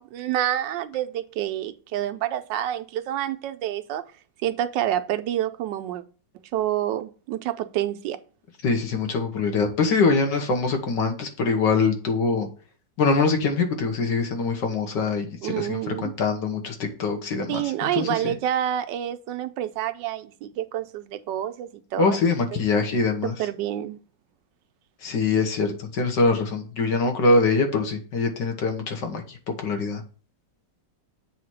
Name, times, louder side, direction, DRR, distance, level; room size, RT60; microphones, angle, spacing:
voice 1, 0.0-4.0 4.4-6.0 6.5-8.2 15.4-16.2 17.5-22.2 23.2-24.0, right 11 dB, 90° right, 1.3 m, -28 dB
voice 2, 8.6-12.5 13.0-18.3 22.0-23.3 25.0-30.0, left 4 dB, 80° left, 1.9 m, -24 dB
7.7 x 2.9 x 6.1 m
omnidirectional pair, 1.9 m